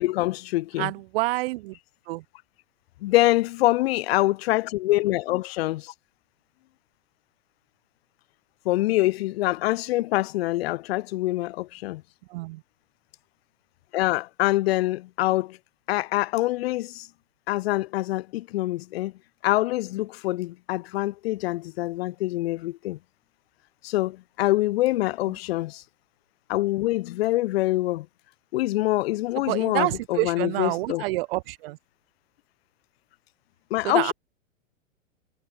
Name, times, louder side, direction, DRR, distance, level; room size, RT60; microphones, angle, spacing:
voice 1, 0.0-0.9 3.0-5.9 8.6-12.0 13.9-15.6 15.9-17.1 17.5-19.1 19.4-23.0 23.8-25.8 26.5-28.1 28.5-31.0 33.7-34.1, left 17 dB, 50° left, 4.7 m, -25 dB
voice 2, 0.8-1.8 2.1-2.2 12.3-12.6 29.5-31.8 33.8-34.1, right 20 dB, 45° right, 3.6 m, -28 dB
figure-of-eight pair, 105°, 39 cm